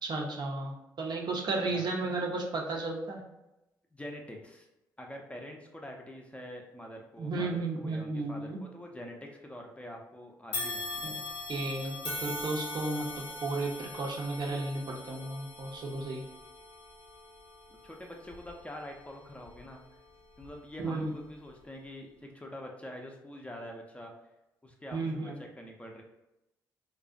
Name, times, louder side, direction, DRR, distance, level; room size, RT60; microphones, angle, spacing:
voice 1, 0.0-3.2 7.2-8.6 11.0-11.2 11.5-16.2 20.8-21.1 24.9-25.3, right 2 dB, 50° right, 1 dB, 0.5 m, -34 dB
voice 2, 3.9-4.7 5.0-11.2 17.8-19.8 20.4-24.1 24.6-26.0, left 1 dB, 15° left, 1 dB, 0.5 m, -45 dB
sound 1, 10.5-19.8 20.3-20.5 21.5-21.6, left 2 dB, 65° left, 0.6 m, -41 dB
2.4 x 2.0 x 2.4 m, 0.93 s
hypercardioid pair, 45°, 10 cm